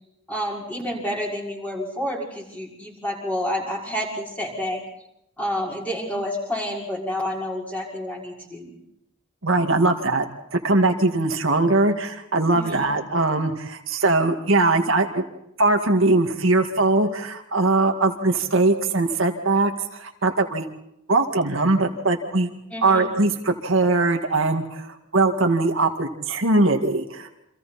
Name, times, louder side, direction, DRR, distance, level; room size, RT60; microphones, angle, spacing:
voice 1, 0.3-4.8 5.4-8.7 12.5-12.9 22.7-23.1, equal, 5° left, -2 dB, 6.0 m, -29 dB
voice 2, 9.4-10.3 10.5-15.2 15.6-20.7 21.1-22.5 22.8-27.3, right 2 dB, 65° right, 3 dB, 2.1 m, -21 dB
29.5 x 26.0 x 4.3 m, 0.81 s
head